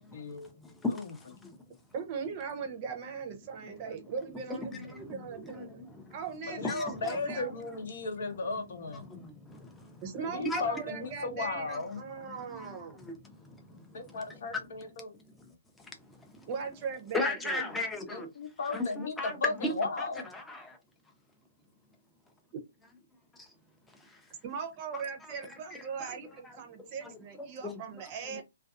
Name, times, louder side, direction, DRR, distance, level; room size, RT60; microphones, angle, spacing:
voice 1, 0.0-0.5 0.9-1.1 4.7-4.9 6.6-9.0 10.3-12.0 13.9-15.1 18.1-20.2, left 3 dB, 60° left, 0.7 m, -35 dB
voice 2, 0.6-1.6 4.5-6.1 6.6-7.2 9.0-10.0 10.4-10.6 12.2-14.0 14.3-14.4 15.3-15.4 16.1-16.5 17.1-18.3 18.7-20.0 20.3-20.8 23.4-23.5 24.0-24.2 25.7-25.8 27.0-27.8, left 2 dB, 5° left, 0.5 m, -37 dB
voice 3, 1.9-5.8 6.1-7.5 10.0-13.0 16.5-17.6 24.4-28.4, right 6 dB, 35° right, 0.6 m, -39 dB
2.5 x 2.3 x 2.4 m
figure-of-eight pair, 130°, 0 cm